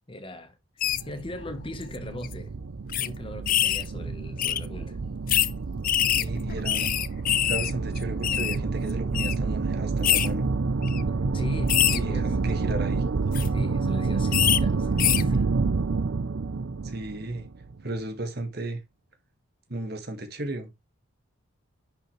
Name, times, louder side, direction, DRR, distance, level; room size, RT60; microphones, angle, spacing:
voice 1, 0.1-0.6 1.0-2.5 3.0-5.0 11.3-12.3 13.5-15.5, left 1 dB, 25° left, 1.2 m, -39 dB
sound 1, 0.8-1.0 1.8-2.0 2.2-2.3 2.9-3.1 3.5-3.9 4.4-4.6 5.3-5.5 5.8-7.7 8.0-8.6 9.1-9.3 10.0-10.3 10.8-11.0 11.7-12.0 13.2-13.5 14.3-14.6 15.0-15.2, left 12 dB, 40° left, 0.5 m, -24 dB
sound 2, 0.8-17.9, right 4 dB, 80° right, 0.6 m, -28 dB
voice 2, 6.2-6.9 7.4-10.5 12.0-13.0 16.8-17.5 17.8-18.8 19.7-20.7, right 2 dB, 50° right, 1.9 m, -34 dB
10.5 x 5.6 x 3.2 m
head